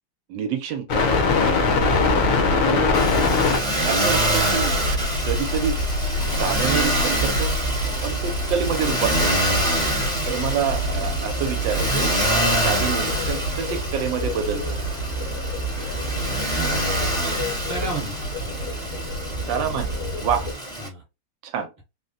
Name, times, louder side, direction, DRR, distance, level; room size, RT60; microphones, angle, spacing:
voice 1, 0.3-1.2 2.6-2.9 3.8-4.7 5.2-5.8 6.3-7.5 8.0-9.4 10.3-12.1 12.5-14.8 19.4-19.9 20.2-20.5 21.4-21.7, right 8 dB, 80° right, 1.3 m, -27 dB
sound 1, 0.9-3.6 7.1-7.2 7.4-7.5 7.7-9.0 9.3-16.4, left 4 dB, 65° left, 0.8 m, -23 dB
sound 2, 1.7-20.5, right 1 dB, 90° left, 1.5 m, -29 dB
Motor vehicle (road), 2.9-20.9, right 1 dB, 5° left, 0.5 m, -26 dB
voice 2, 16.5-16.8 17.6-18.5 19.4-19.8 20.8-21.0, right 2 dB, 35° right, 1.3 m, -34 dB
3.6 x 2.1 x 2.6 m
omnidirectional pair, 2.1 m